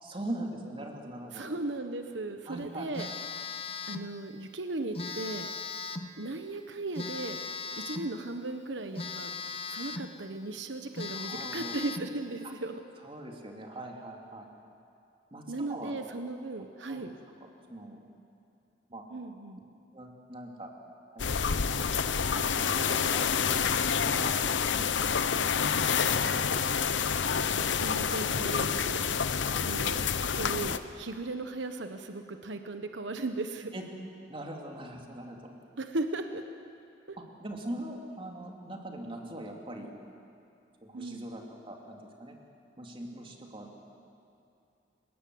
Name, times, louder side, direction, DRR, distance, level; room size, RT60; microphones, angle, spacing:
voice 1, 0.0-1.4 2.5-2.9 11.1-11.8 12.4-12.5 13.0-14.5 15.3-15.4 15.7-15.9 16.9-17.1 17.4-18.0 18.9-19.0 19.9-20.7 21.1-21.2 21.5-21.9 22.5-23.3 24.0-24.4 24.7-25.7 29.5-29.6 33.7-33.8 34.3-35.5 37.2-39.9 40.8-42.4 42.8-43.9, right 1 dB, 30° right, 1 dB, 3.0 m, -42 dB
voice 2, 1.3-3.1 3.9-5.5 6.2-7.4 7.7-9.3 9.7-12.8 15.5-17.1 19.1-19.6 27.5-29.1 29.6-30.0 30.3-33.7 35.8-36.4 37.1-37.2 40.9-41.3, right 2 dB, 75° right, 7 dB, 1.2 m, -37 dB
Telephone, 2.9-4.1 4.9-6.1 7.0-8.1 9.0-10.1 10.6-10.7 11.0-12.1, left 4 dB, 30° left, 1.0 m, -38 dB
sound 1, 21.2-30.8, left 6 dB, 85° left, 0.9 m, -28 dB
30.0 x 18.5 x 7.9 m, 2.6 s
head